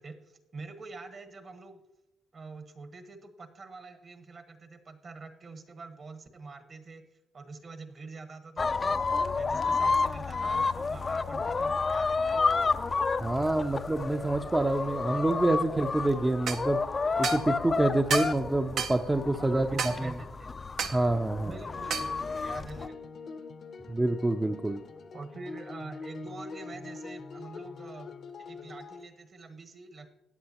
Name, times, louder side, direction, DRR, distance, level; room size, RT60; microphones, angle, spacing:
voice 1, 0.0-1.8 2.3-7.0 7.3-9.0 9.3-12.5 19.3-20.5 21.4-23.2 25.1-28.1 28.4-30.1, right 3 dB, 45° right, 7 dB, 1.3 m, -46 dB
sound 1, 8.6-22.9, left 4 dB, 30° left, 0.4 m, -30 dB
voice 2, 13.2-16.8 17.2-20.1 20.9-21.6 23.9-24.8, right 2 dB, 15° right, 5 dB, 0.5 m, -27 dB
sound 2, 16.5-16.6 17.2-17.4 18.1-18.4 18.8-19.0 19.8-20.0 20.8-21.0 21.9-22.1, right 7 dB, 65° right, 0.6 m, -31 dB
sound 3, 21.7-29.0, left 4 dB, 60° left, 0.7 m, -44 dB
14.0 x 9.4 x 2.9 m, 0.95 s
cardioid pair, 90°, 0 cm